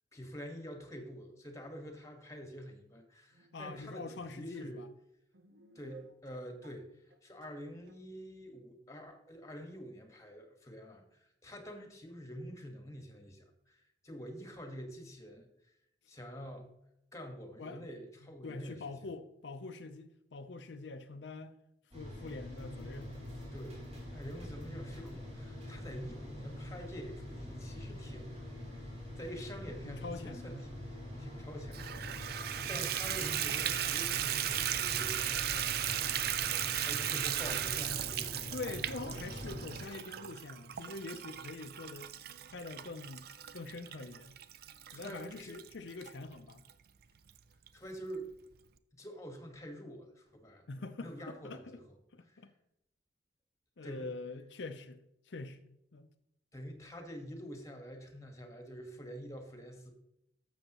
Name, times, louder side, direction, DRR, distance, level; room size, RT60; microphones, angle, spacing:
voice 1, 0.1-4.8 5.7-6.9 7.2-15.5 16.1-16.7 17.1-18.8 23.5-28.3 28.6-28.8 29.2-38.5 39.1-39.2 44.9-45.5 47.7-48.3 48.9-50.7 51.0-51.8 52.3-52.4 53.8-54.1 56.5-59.9, equal, 20° left, 1.5 m, -47 dB
sound 1, 3.3-4.7 5.3-6.8 7.1-7.6 7.9-8.0, right 3 dB, 75° right, 0.8 m, -57 dB
voice 2, 3.5-4.9 17.6-17.9 18.2-21.5 21.9-23.1 29.8-30.5 38.5-42.1 42.5-43.3 43.5-44.4 44.9-46.6 50.7-51.8 52.1-52.5 53.8-56.1, left 3 dB, 80° left, 0.6 m, -44 dB
sound 2, 21.9-39.8, left 1 dB, 40° right, 3.3 m, -45 dB
Water tap faucet / Bathtub (filling or washing), 31.7-46.1 46.7-46.8 47.3-47.4 47.7-47.8, right 11 dB, 60° right, 0.5 m, -36 dB
12.0 x 7.2 x 3.0 m
head